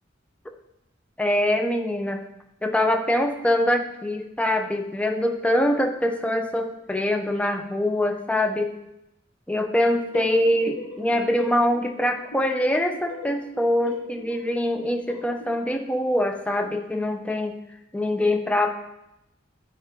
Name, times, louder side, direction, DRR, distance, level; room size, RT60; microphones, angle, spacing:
voice 1, 1.2-2.2 2.6-8.7 9.5-17.6 17.9-18.7, left 1 dB, 5° left, 5 dB, 0.5 m, -24 dB
sound 1, 10.1-15.7, left 3 dB, 85° left, 2.0 m, -40 dB
9.3 x 3.7 x 3.5 m, 0.86 s
head